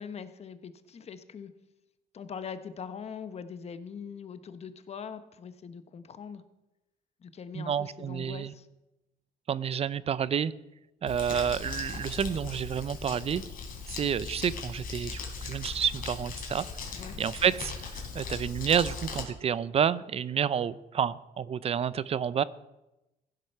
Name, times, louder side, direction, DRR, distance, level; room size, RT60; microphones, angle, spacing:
voice 1, 0.0-1.5 2.1-6.4 7.2-8.7 16.9-17.2, left 6 dB, 40° left, 11 dB, 1.0 m, -42 dB
voice 2, 7.5-8.5 9.5-10.5 11.0-13.4 13.9-22.4, right 8 dB, 35° right, 18 dB, 0.5 m, -29 dB
Crumpling crinkling, 11.1-19.2, left 4 dB, 55° left, 3.4 m, -39 dB
15.5 x 7.8 x 5.6 m, 0.96 s
cardioid pair, 110°, 17 cm